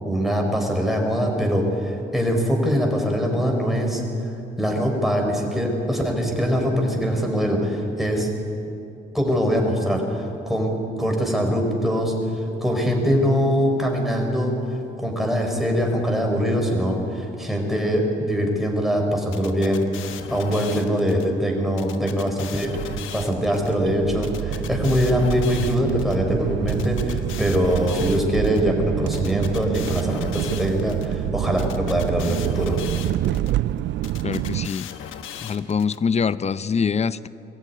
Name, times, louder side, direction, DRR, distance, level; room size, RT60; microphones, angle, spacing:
voice 1, 0.0-4.0 4.6-8.3 9.1-10.7 11.0-12.1 12.6-14.5 15.0-19.9 20.3-32.8, equal, ahead, 0 dB, 5.0 m, -23 dB
sound 1, 19.3-21.2 21.8-23.7 24.2-26.1 26.7-28.6 29.1-31.1 31.6-33.5 34.0-36.0, left 10 dB, 90° left, 1.2 m, -38 dB
sound 2, 22.6-34.7, right 13 dB, 70° right, 0.4 m, -27 dB
voice 2, 34.2-34.9 35.4-37.3, left 6 dB, 35° left, 16 dB, 0.6 m, -24 dB
22.0 x 14.5 x 9.7 m, 2.8 s
cardioid pair, 90°, 20 cm